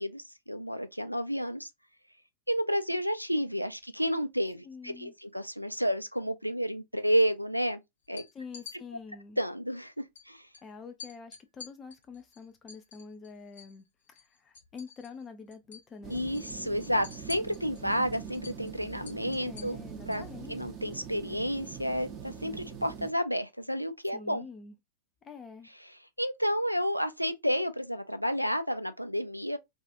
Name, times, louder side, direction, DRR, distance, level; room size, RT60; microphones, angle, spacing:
voice 1, 0.0-1.7 2.5-7.8 8.1-8.2 9.4-10.5 16.1-19.8 20.1-24.5 25.8-25.9 26.2-29.6, equal, 90° right, 0.3 m, -31 dB
voice 2, 4.6-5.1 8.3-9.4 10.6-13.8 14.2-16.3 19.4-20.5 24.1-24.7 25.2-25.7, left 5 dB, 20° left, 0.6 m, -46 dB
sound 1, 8.0-8.8 10.1-10.2 10.5-10.6 11.0-13.8 14.1-15.3 15.5-15.9 16.2-20.3, left 6 dB, 65° left, 0.7 m, -48 dB
sound 2, 16.0-23.1, right 7 dB, 25° right, 0.7 m, -43 dB
2.7 x 2.3 x 2.5 m
figure-of-eight pair, 95°, 0 cm